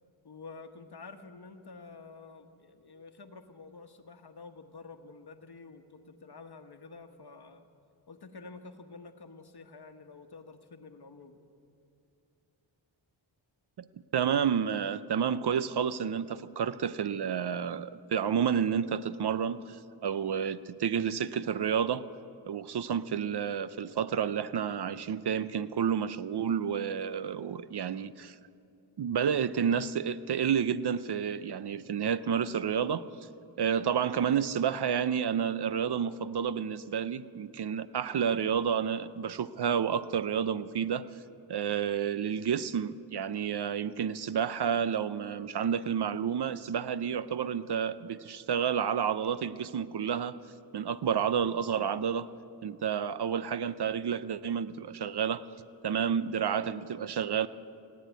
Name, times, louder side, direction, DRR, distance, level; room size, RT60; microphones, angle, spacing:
voice 1, 0.2-7.7 8.1-11.4, left 4 dB, 50° left, 7 dB, 1.2 m, -49 dB
voice 2, 14.1-22.1 22.5-28.4 29.0-33.0 33.6-41.0 41.5-50.4 50.7-52.3 52.6-55.4 55.8-57.5, right 8 dB, 55° right, 15 dB, 0.6 m, -30 dB
18.0 x 8.4 x 9.3 m, 2.6 s
cardioid pair, 50°, 48 cm